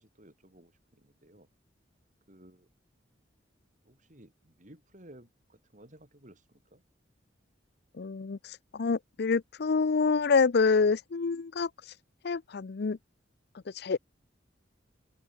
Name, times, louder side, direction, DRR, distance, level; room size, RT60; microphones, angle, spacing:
voice 1, 0.0-1.5 2.3-2.7 3.9-6.8, right 1 dB, 40° right, 6.0 m, -56 dB
voice 2, 7.9-11.9 12.2-13.0 13.7-14.0, left 4 dB, 60° left, 0.5 m, -27 dB
open air
head